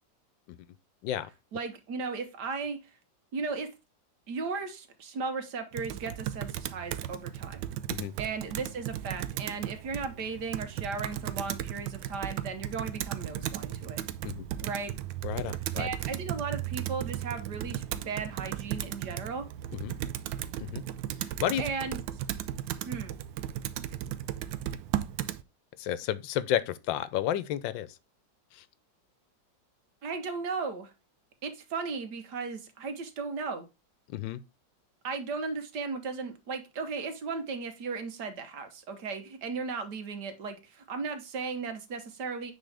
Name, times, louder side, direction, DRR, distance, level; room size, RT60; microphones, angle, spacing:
voice 1, 1.5-2.8 3.3-3.7 4.3-7.6 8.2-14.0 14.6-14.9 15.8-19.5 21.6-22.0 22.9-23.1 30.0-30.9 31.4-33.7 35.0-42.5, right 4 dB, 65° right, 1.6 m, -36 dB
Computer keyboard, 5.7-25.4, right 12 dB, 85° right, 1.3 m, -36 dB
voice 2, 15.2-15.9 19.7-20.0 20.6-20.8 21.2-21.6 25.8-28.0 28.5-28.6 34.1-34.4, left 11 dB, 85° left, 1.4 m, -32 dB
9.3 x 3.8 x 3.3 m
omnidirectional pair, 2.0 m